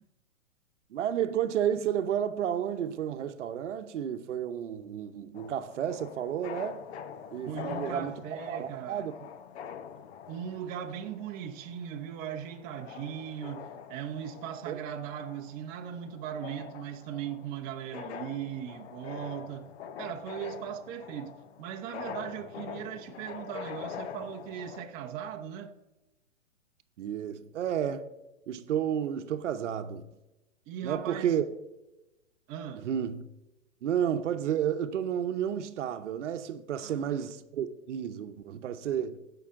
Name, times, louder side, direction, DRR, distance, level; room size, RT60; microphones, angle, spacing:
voice 1, 0.9-6.8 7.3-9.3 14.7-14.8 27.0-28.1 28.5-30.0 30.8-31.5 32.8-33.2 33.8-39.2, right 9 dB, 60° right, 0.9 m, -31 dB
sound 1, 5.3-24.8, left 7 dB, 55° left, 0.8 m, -44 dB
voice 2, 7.4-9.1 10.3-19.7 20.0-25.7 30.7-31.4 32.5-32.9 36.7-37.2, right 9 dB, 25° right, 0.7 m, -39 dB
15.0 x 5.7 x 3.7 m
hypercardioid pair, 135°, 40 cm